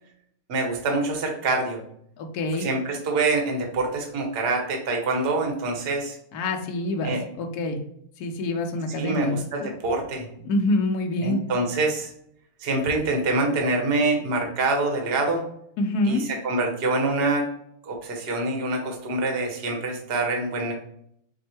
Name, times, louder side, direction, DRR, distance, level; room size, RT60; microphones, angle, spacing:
voice 1, 0.5-1.8 2.6-6.2 7.0-7.2 9.0-10.3 11.2-12.1 12.6-15.4 16.0-17.5 17.8-20.7, right 2 dB, 45° right, 2 dB, 0.8 m, -25 dB
voice 2, 2.2-2.7 6.3-7.8 8.2-9.4 10.4-11.4 15.8-16.3, left 1 dB, 65° left, 4 dB, 1.0 m, -26 dB
5.3 x 2.1 x 4.3 m, 0.70 s
omnidirectional pair, 2.2 m